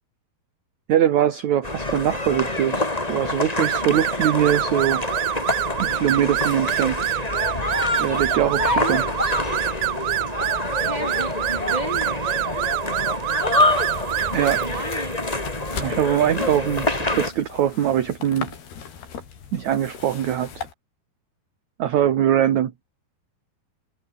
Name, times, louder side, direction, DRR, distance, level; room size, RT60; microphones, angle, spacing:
voice 1, 0.9-5.0 5.8-7.0 8.0-9.0 14.3-14.6 15.7-18.5 19.5-20.7 21.8-22.7, right 10 dB, 55° right, 2.5 m, -22 dB
sound 1, 1.6-17.3, left 2 dB, 10° left, 2.1 m, -26 dB
sound 2, 3.6-14.8, right 16 dB, 75° right, 2.7 m, -26 dB
sound 3, 7.6-20.7, left 7 dB, 75° left, 5.9 m, -41 dB
voice 2, 8.6-9.0 10.8-12.2 14.6-15.2 17.3-17.4, right 1 dB, 10° right, 6.2 m, -32 dB
omnidirectional pair, 4.6 m